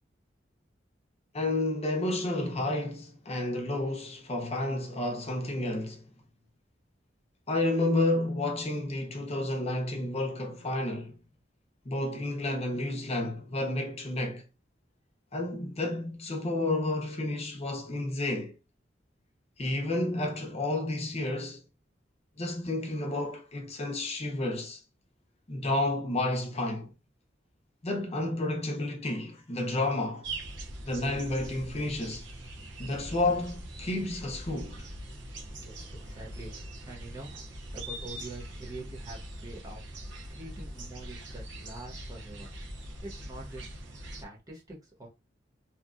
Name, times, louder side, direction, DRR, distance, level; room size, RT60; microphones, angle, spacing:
voice 1, 1.3-6.0 7.5-11.2 11.8-14.5 15.3-18.6 19.6-21.6 22.4-24.8 25.5-26.9 27.8-30.3 30.8-32.3 32.8-34.9, left 2 dB, 35° left, 0.7 m, -31 dB
sound 1, 30.2-44.2, right 1 dB, 85° right, 0.8 m, -42 dB
voice 2, 35.6-42.5 43.0-43.8 44.0-45.1, right 2 dB, 20° right, 1.1 m, -45 dB
2.8 x 2.4 x 2.4 m
head